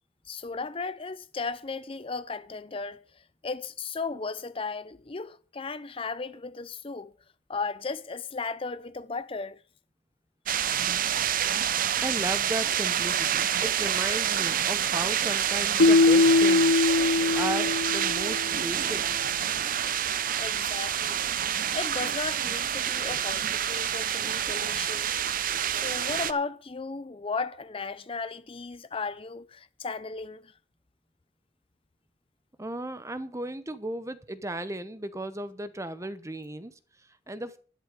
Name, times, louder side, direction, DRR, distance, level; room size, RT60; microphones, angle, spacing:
voice 1, 0.3-7.1 7.5-9.6 20.4-21.3 21.7-25.2 25.7-30.5, left 4 dB, 30° left, 0.6 m, -35 dB
sound 1, 10.5-26.3, right 9 dB, 45° right, 0.6 m, -28 dB
voice 2, 12.0-16.8 17.1-19.1 32.6-37.6, right 1 dB, 15° right, 0.9 m, -35 dB
Keyboard (musical), 15.8-18.6, left 3 dB, 75° left, 0.6 m, -21 dB
12.0 x 11.0 x 5.1 m
head